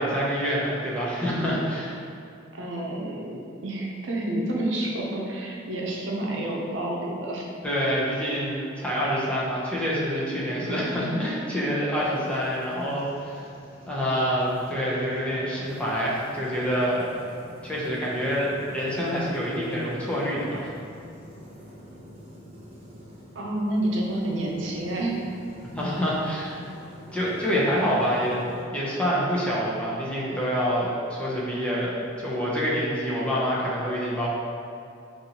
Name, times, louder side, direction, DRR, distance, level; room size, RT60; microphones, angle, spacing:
voice 1, 0.0-2.0 7.6-13.5 13.9-17.0 17.6-20.7 25.7-26.7 27.1-28.4 28.7-34.3, equal, 5° left, -7 dB, 0.7 m, -26 dB
voice 2, 2.5-7.5 23.3-25.2, right 1 dB, 70° right, -2 dB, 0.7 m, -29 dB
sound 1, 11.9-28.6, equal, 30° right, 1.0 m, -47 dB
5.2 x 2.6 x 2.9 m, 2.5 s
head